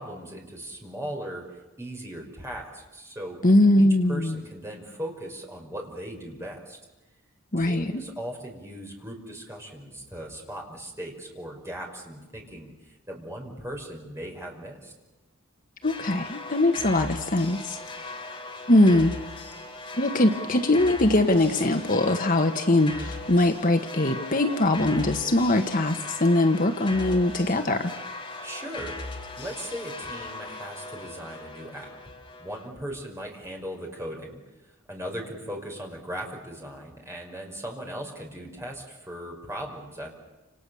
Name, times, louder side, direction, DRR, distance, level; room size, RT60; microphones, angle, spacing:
voice 1, 0.0-3.4 3.8-6.8 7.6-14.9 28.4-29.0 29.4-31.9 32.4-34.4 34.9-40.1, equal, 15° right, 0 dB, 5.4 m, -38 dB
voice 2, 3.4-4.4 7.5-7.9 15.8-17.8 18.7-19.2 20.0-27.9, left 1 dB, 40° left, 6 dB, 1.3 m, -21 dB
sound 1, 15.8-32.7, left 2 dB, 25° left, 3.1 m, -38 dB
29.5 x 28.0 x 7.1 m, 1.1 s
head